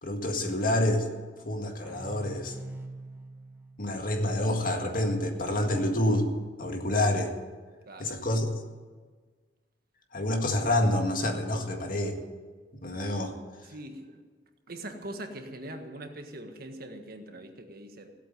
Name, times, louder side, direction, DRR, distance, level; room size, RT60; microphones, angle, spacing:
voice 1, 0.0-1.1 1.5-2.6 3.8-6.3 6.6-7.3 8.0-8.5 10.1-12.2 12.8-13.4, left 1 dB, 50° left, 4 dB, 2.0 m, -27 dB
sound 1, 1.8-5.3, right 2 dB, 15° right, 2.0 m, -45 dB
voice 2, 7.9-8.2 13.6-14.2 14.7-18.1, right 1 dB, 55° right, 5 dB, 1.6 m, -42 dB
16.0 x 8.4 x 9.3 m, 1.4 s
head